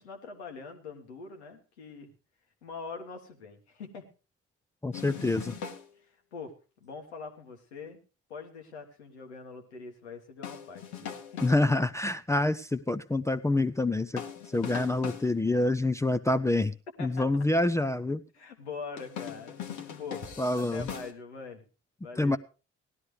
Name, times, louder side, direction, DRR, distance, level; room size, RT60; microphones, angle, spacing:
voice 1, 0.0-2.1 2.6-4.1 6.0-6.5 6.8-8.0 8.3-11.6 17.0-17.3 18.3-20.2 20.5-21.6 22.0-22.4, left 4 dB, 80° left, 4 dB, 1.5 m, -43 dB
voice 2, 4.8-5.6 11.4-14.2 14.5-16.7 17.0-18.2 20.4-20.9 22.2-22.4, left 2 dB, 10° left, 8 dB, 0.5 m, -27 dB
sound 1, 4.9-5.9 10.4-11.7 14.2-15.3 19.0-21.1, left 8 dB, 65° left, 1.4 m, -40 dB
17.5 x 12.5 x 3.2 m, 0.33 s
figure-of-eight pair, 45°, 33 cm